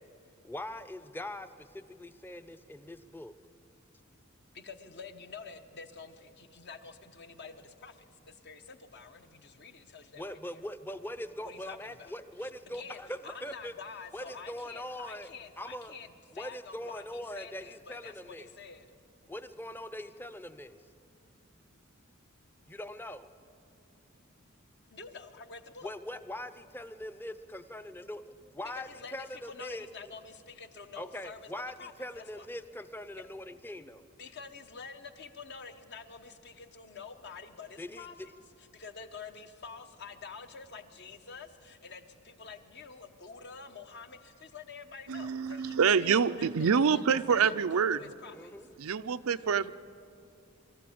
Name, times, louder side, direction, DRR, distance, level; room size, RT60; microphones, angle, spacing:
voice 1, 0.4-3.3 10.2-13.7 14.1-15.3 15.6-15.9 16.3-18.5 19.3-20.8 22.7-23.3 25.8-28.2 28.5-29.9 31.0-34.0 37.8-38.1 48.3-48.7, left 1 dB, 10° left, 12 dB, 0.6 m, -42 dB
voice 2, 4.5-10.6 11.4-12.1 12.4-18.9 24.9-25.9 28.6-31.5 31.8-32.5 34.2-48.5, left 5 dB, 55° left, 8 dB, 1.0 m, -48 dB
voice 3, 45.1-48.0 48.8-49.7, right 6 dB, 90° right, 12 dB, 0.5 m, -26 dB
23.5 x 13.5 x 8.6 m, 2.5 s
head